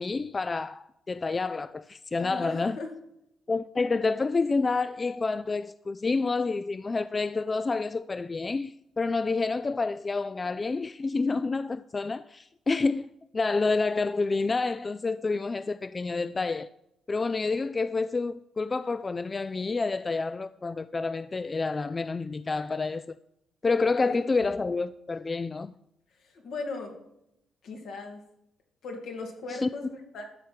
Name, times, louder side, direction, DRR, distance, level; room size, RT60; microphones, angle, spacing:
voice 1, 0.0-2.8 3.5-13.1 13.3-16.7 17.1-23.2 23.6-25.7 29.6-29.7, left 3 dB, 30° left, 0.3 m, -28 dB
voice 2, 2.2-2.9 24.1-24.2 26.2-27.0 27.6-28.2 28.8-30.2, left 3 dB, 75° left, 2.4 m, -38 dB
13.0 x 4.4 x 7.5 m
cardioid pair, 90°, 0 cm